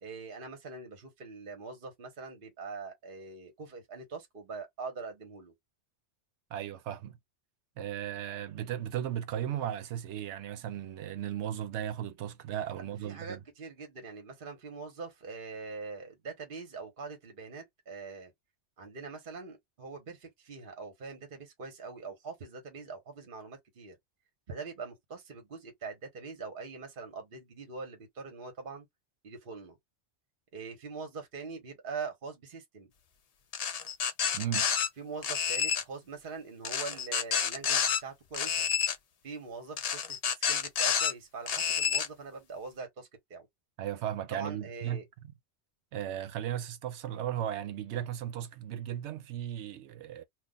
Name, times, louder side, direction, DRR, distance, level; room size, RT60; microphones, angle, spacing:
voice 1, 0.0-5.5 12.7-18.3 18.8-24.0 24.5-28.9 29.2-29.8 30.5-32.9 35.0-38.7 39.2-43.5 44.3-45.0, right 4 dB, 50° right, 1.1 m, -43 dB
voice 2, 6.5-7.2 7.8-13.4 34.3-34.7 43.8-45.0 45.9-50.2, right 10 dB, 80° right, 0.9 m, -36 dB
sound 1, 33.5-34.9 35.2-35.8 36.6-38.0 38.3-39.0 39.8-41.1 41.5-42.1, left 7 dB, 50° left, 0.5 m, -29 dB
2.4 x 2.4 x 3.8 m
omnidirectional pair, 1.2 m